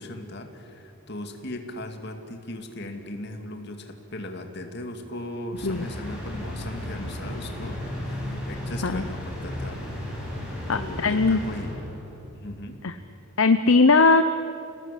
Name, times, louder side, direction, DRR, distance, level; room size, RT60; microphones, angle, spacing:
voice 1, 0.0-9.8 10.7-11.8 12.3-12.8, left 1 dB, 50° left, 5 dB, 2.4 m, -38 dB
sound 1, 5.5-12.2, left 1 dB, 5° right, 6.1 m, -34 dB
voice 2, 10.7-11.4 12.8-12.9 13.4-14.2, left 3 dB, 65° left, 9 dB, 0.8 m, -19 dB
29.0 x 18.5 x 8.5 m, 2.7 s
head